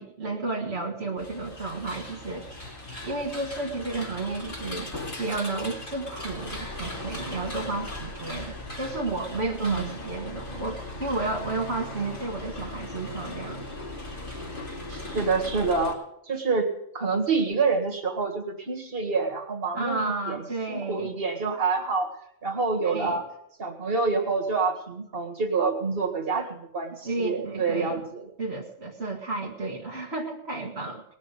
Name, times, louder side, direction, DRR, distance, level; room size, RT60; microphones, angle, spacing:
voice 1, 0.0-2.5 3.0-4.9 5.2-13.6 19.7-21.1 22.8-23.2 27.0-28.0 28.4-31.1, right 2 dB, 80° right, -1 dB, 1.8 m, -32 dB
sound 1, 1.2-15.9, left 1 dB, 55° left, 2.8 m, -38 dB
voice 2, 9.6-9.9 14.9-16.0 16.2-20.4 20.7-22.1 22.4-23.3 23.6-28.3, right 4 dB, 60° right, 3 dB, 2.1 m, -27 dB
19.0 x 6.5 x 8.1 m, 0.76 s
omnidirectional pair, 1.1 m